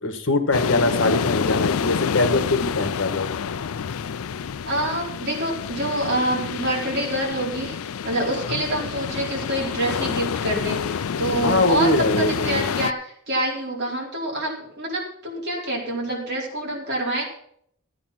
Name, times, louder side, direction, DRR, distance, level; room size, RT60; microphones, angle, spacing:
voice 1, 0.0-3.3 8.3-8.6 11.4-12.8, left 2 dB, 60° left, 7 dB, 1.6 m, -22 dB
sound 1, 0.5-12.9, left 6 dB, 75° left, 0.4 m, -28 dB
voice 2, 4.6-7.8 8.0-11.9 12.2-17.2, right 1 dB, 50° right, -2 dB, 4.4 m, -26 dB
14.0 x 8.7 x 6.0 m, 0.67 s
head